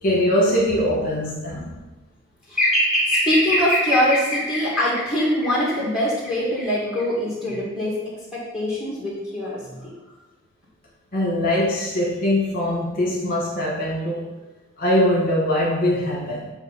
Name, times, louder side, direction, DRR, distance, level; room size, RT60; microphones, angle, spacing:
voice 1, 0.0-1.7 11.1-14.3 14.8-16.5, left 1 dB, 40° left, -4 dB, 1.3 m, -22 dB
voice 2, 2.5-8.0 8.3-9.9, equal, 5° right, -6 dB, 1.9 m, -22 dB
8.2 x 3.2 x 5.6 m, 1.1 s
head